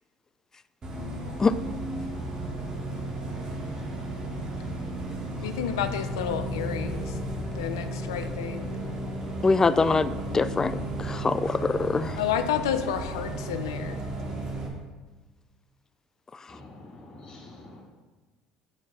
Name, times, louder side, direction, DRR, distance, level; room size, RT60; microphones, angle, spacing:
Bus, 0.8-14.7, right 1 dB, 35° right, 2.4 m, -34 dB
voice 1, 5.4-7.2 7.5-8.7 12.2-14.0, left 9 dB, 85° left, 9 dB, 0.6 m, -30 dB
voice 2, 9.4-12.2 16.3-16.6, left 4 dB, 25° left, 15 dB, 0.4 m, -24 dB
voice 3, 16.5-17.8, left 2 dB, 45° left, -3 dB, 2.3 m, -46 dB
8.1 x 5.1 x 5.6 m, 1.2 s
hypercardioid pair, 70°, 2 cm